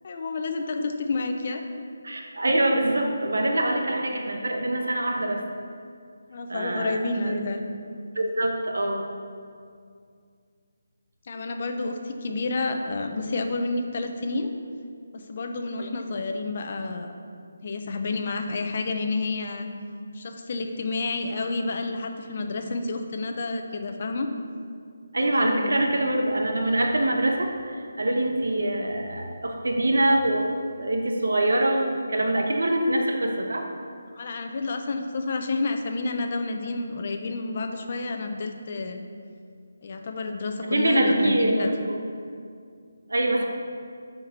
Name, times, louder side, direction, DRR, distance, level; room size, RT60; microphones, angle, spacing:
voice 1, 0.0-1.6 6.3-7.6 11.3-14.5 15.1-17.1 17.6-19.7 20.1-24.3 25.2-25.8 34.2-39.0 39.8-41.7 43.4-43.5, left 3 dB, 35° left, 5 dB, 0.7 m, -30 dB
voice 2, 2.0-5.4 6.5-7.4 8.1-9.1 25.1-30.5 30.8-33.7 40.7-42.0 43.1-43.4, right 1 dB, 90° right, 2 dB, 1.2 m, -24 dB
7.0 x 5.9 x 6.8 m, 2.3 s
hypercardioid pair, 175°, 0 cm